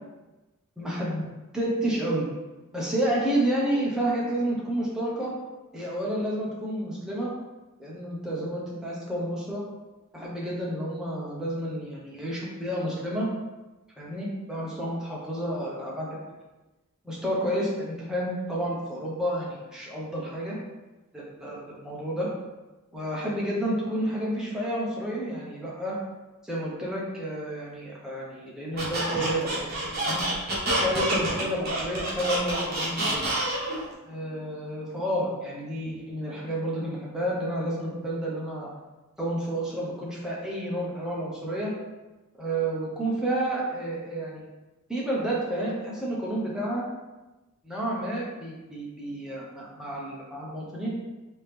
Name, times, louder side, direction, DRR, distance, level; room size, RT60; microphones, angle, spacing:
voice 1, 0.8-1.2 1.5-2.3 2.7-5.3 5.7-7.3 7.8-9.6 10.1-13.3 14.0-16.2 17.0-20.6 21.1-22.3 22.9-26.0 26.4-30.2 30.7-33.2 34.1-38.7 39.2-41.7 42.4-44.4 44.9-46.8 47.6-51.0, right 1 dB, 5° right, -6 dB, 0.8 m, -30 dB
Squeak, 28.8-33.8, right 1 dB, 45° right, 1.0 m, -28 dB
3.6 x 2.9 x 3.4 m, 1.1 s
head